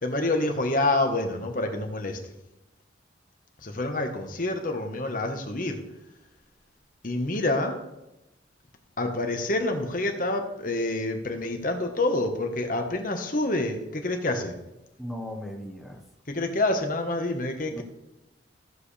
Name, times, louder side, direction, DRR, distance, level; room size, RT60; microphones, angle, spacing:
voice 1, 0.0-2.2 3.6-5.8 7.0-7.8 9.0-14.5 16.3-17.8, left 2 dB, 45° left, 4 dB, 1.3 m, -27 dB
voice 2, 15.0-16.0 17.7-17.8, equal, ahead, 1 dB, 1.0 m, -37 dB
14.5 x 7.8 x 3.4 m, 0.93 s
head